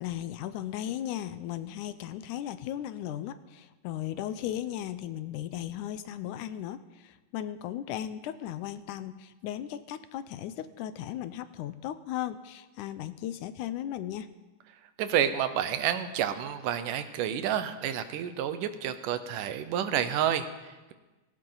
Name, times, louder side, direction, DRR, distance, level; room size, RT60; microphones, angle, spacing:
voice 1, 0.0-14.3, left 11 dB, 80° left, 12 dB, 2.1 m, -36 dB
voice 2, 15.0-20.9, right 9 dB, 90° right, 10 dB, 2.5 m, -29 dB
17.5 x 17.5 x 3.9 m, 1.2 s
omnidirectional pair, 3.6 m